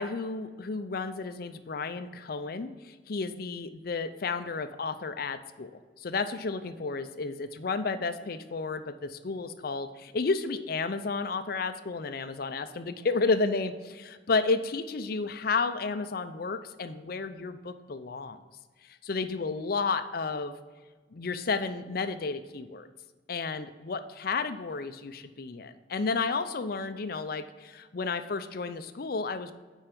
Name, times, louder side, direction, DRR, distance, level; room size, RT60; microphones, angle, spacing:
voice 1, 0.0-5.7 6.0-18.4 19.0-20.5 21.1-22.9 23.3-29.5, left 4 dB, 55° left, 11 dB, 0.5 m, -32 dB
9.0 x 4.6 x 5.3 m, 1.4 s
head